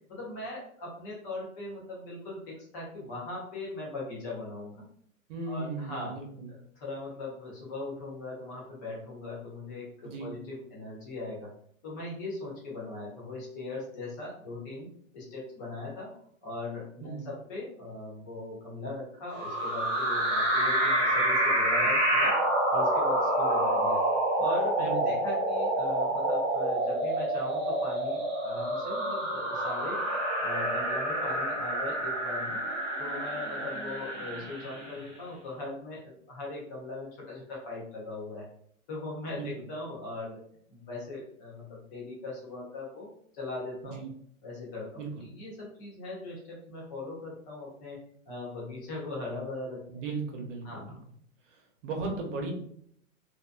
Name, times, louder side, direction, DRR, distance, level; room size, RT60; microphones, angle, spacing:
voice 1, 0.1-4.8 5.5-6.2 6.5-11.5 11.8-14.9 15.1-16.1 16.4-22.4 22.7-24.0 24.4-30.0 30.4-32.6 33.0-38.4 38.9-40.4 40.7-44.0 44.4-48.0 48.3-50.0 50.6-51.0, left 2 dB, 15° left, -5 dB, 0.4 m, -39 dB
voice 2, 5.3-6.5 10.0-10.3 17.0-17.3 24.8-25.1 39.3-39.7 43.8-44.1 45.0-45.1 49.9-51.0 51.5-52.5, right 3 dB, 60° right, 1 dB, 0.9 m, -37 dB
sound 1, 19.3-35.0, right 1 dB, 20° right, 0.7 m, -28 dB
2.5 x 2.1 x 2.4 m, 0.64 s
hypercardioid pair, 140°, 42 cm